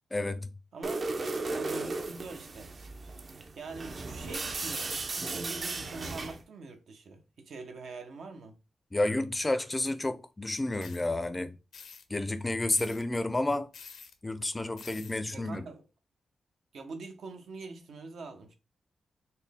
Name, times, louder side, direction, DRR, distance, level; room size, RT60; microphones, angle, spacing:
voice 1, 0.1-0.5 8.9-11.6 12.1-13.7 14.2-15.6, left 2 dB, 20° left, 0.4 m, -30 dB
voice 2, 0.7-1.1 1.5-2.7 3.5-8.6 15.3-15.8 16.7-18.5, right 3 dB, 75° right, 0.8 m, -44 dB
sound 1, 0.8-6.4, right 3 dB, 45° right, 0.5 m, -36 dB
sound 2, 10.8-11.0 11.7-12.0 12.7-13.0 13.7-14.1 14.8-15.2, left 6 dB, 75° left, 0.6 m, -48 dB
4.2 x 2.0 x 3.5 m
cardioid pair, 90°, 0 cm